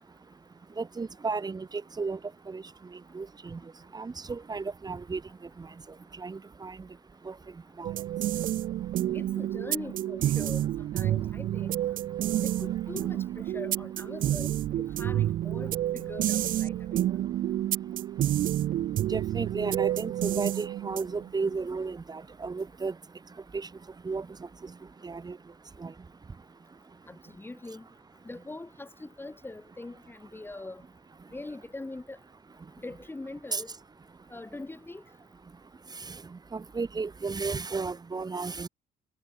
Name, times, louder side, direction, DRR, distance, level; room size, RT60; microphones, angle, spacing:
voice 1, 0.8-2.2 2.5-2.6 3.1-3.6 3.9-5.2 5.6-5.7 6.2-6.8 7.3-7.4 7.8-7.9 19.1-22.9 23.5-23.7 24.0-24.3 25.0-25.4 25.8-25.9 33.5-33.6 36.1-36.2 36.5-38.7, right 4 dB, 25° right, 2.5 m, -33 dB
sound 1, 7.8-21.3, right 12 dB, 55° right, 0.6 m, -29 dB
voice 2, 9.1-11.7 12.4-17.1 27.1-27.9 28.2-30.8 31.3-32.2 32.8-33.7 34.3-35.0 38.3-38.5, left 2 dB, 15° left, 2.4 m, -42 dB
cardioid pair, 110°, 17 cm